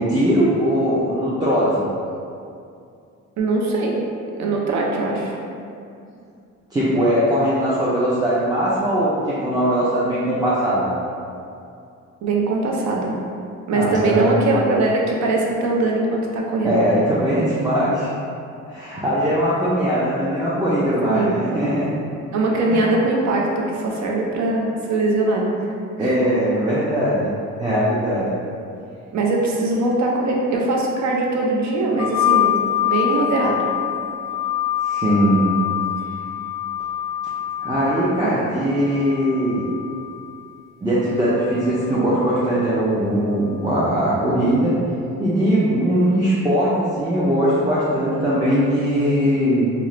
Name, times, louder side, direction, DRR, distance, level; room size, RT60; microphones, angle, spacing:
voice 1, 0.0-1.8 6.7-10.9 13.7-14.4 16.6-18.1 18.7-21.9 22.7-23.0 26.0-27.3 27.6-28.3 34.8-35.6 37.6-39.6 40.8-44.8 45.2-49.7, equal, 15° right, -10 dB, 0.4 m, -20 dB
voice 2, 3.4-4.0 4.4-5.4 12.2-13.1 13.7-16.8 21.1-21.4 22.3-25.5 26.0-26.2 29.1-33.6 38.2-38.3, right 2 dB, 65° right, -1 dB, 0.5 m, -21 dB
sound 1, 32.0-40.4 41.4-42.3, left 11 dB, 60° left, 0.4 m, -25 dB
2.3 x 2.0 x 2.9 m, 2.5 s
cardioid pair, 90°, 30 cm